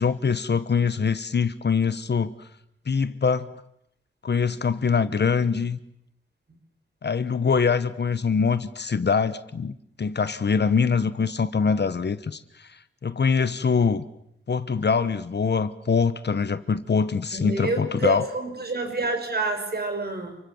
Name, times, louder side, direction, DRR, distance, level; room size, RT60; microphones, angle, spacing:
voice 1, 0.0-2.3 2.9-3.5 4.2-5.8 7.0-14.0 14.5-18.2, left 5 dB, 55° left, 13 dB, 1.2 m, -24 dB
voice 2, 17.3-20.4, right 2 dB, 50° right, 5 dB, 6.4 m, -28 dB
29.5 x 24.0 x 7.2 m, 0.75 s
wide cardioid pair, 100°, 21 cm